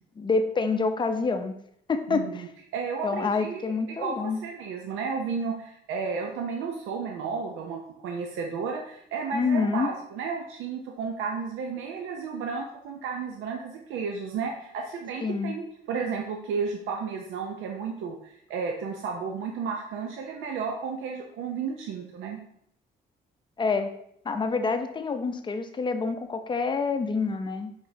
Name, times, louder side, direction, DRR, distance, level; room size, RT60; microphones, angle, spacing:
voice 1, 0.2-1.5 1.9-2.4 3.0-4.4 9.3-9.9 15.2-15.5 23.6-23.9 24.2-27.7, left 4 dB, 25° left, 7 dB, 0.5 m, -27 dB
voice 2, 2.1-2.4 2.7-22.4, right 5 dB, 90° right, 2 dB, 0.5 m, -33 dB
4.8 x 3.6 x 2.7 m, 0.71 s
cardioid pair, 90°, 20 cm